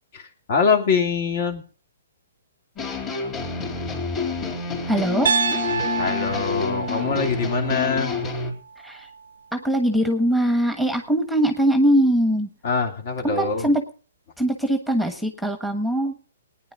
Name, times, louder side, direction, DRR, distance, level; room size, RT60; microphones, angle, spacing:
voice 1, 0.1-1.6 6.0-8.1 12.6-13.7, left 5 dB, 50° left, 4 dB, 2.9 m, -23 dB
sound 1, 2.8-8.5, left 4 dB, 25° left, 3.8 m, -28 dB
voice 2, 4.9-5.3 8.8-9.1 9.5-12.5 13.2-13.8 14.4-16.1, right 1 dB, ahead, 7 dB, 1.3 m, -21 dB
Piano, 5.3-9.3, right 6 dB, 75° right, 0.5 m, -28 dB
19.0 x 9.9 x 3.9 m, 0.40 s
hypercardioid pair, 145°, 0 cm